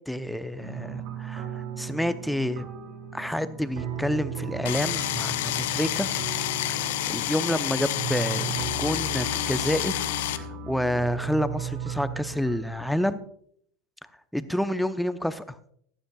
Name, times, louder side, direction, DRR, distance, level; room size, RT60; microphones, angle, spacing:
voice 1, 0.1-2.6 3.1-6.1 7.1-10.0 10.3-13.2 14.3-15.6, left 1 dB, ahead, 13 dB, 0.7 m, -29 dB
sound 1, 0.6-13.2, right 6 dB, 55° right, 3.9 m, -36 dB
sound 2, 4.6-10.4, left 14 dB, 65° left, 0.6 m, -29 dB
15.5 x 12.5 x 2.3 m, 0.64 s
figure-of-eight pair, 85°, 0 cm